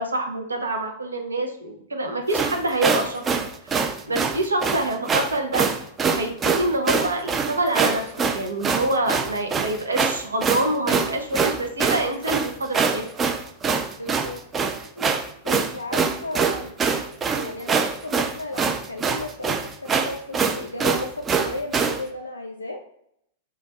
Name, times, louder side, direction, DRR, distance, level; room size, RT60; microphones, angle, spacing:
voice 1, 0.0-3.7 4.1-5.7 6.1-13.3, right 1 dB, 75° right, 4 dB, 0.7 m, -26 dB
sound 1, 2.3-22.0, right 5 dB, 20° right, 0.4 m, -24 dB
voice 2, 14.0-14.4 14.8-15.2 15.4-16.8 17.3-22.8, left 1 dB, 85° left, 2 dB, 0.3 m, -34 dB
3.1 x 2.4 x 4.0 m, 0.73 s
figure-of-eight pair, 100°, 0 cm